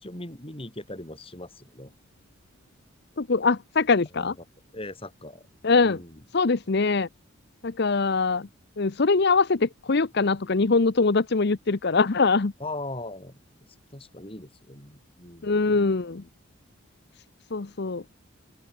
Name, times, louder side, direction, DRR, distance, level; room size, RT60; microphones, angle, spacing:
voice 1, 0.0-1.9 4.1-4.3 4.7-5.5 5.8-6.2 12.6-13.4 13.9-16.0, left 2 dB, 25° left, 5.0 m, -39 dB
voice 2, 3.2-4.3 5.6-6.0 6.3-7.1 7.6-8.5 8.8-12.5 15.4-16.2 17.5-18.0, left 4 dB, 50° left, 0.7 m, -23 dB
open air
head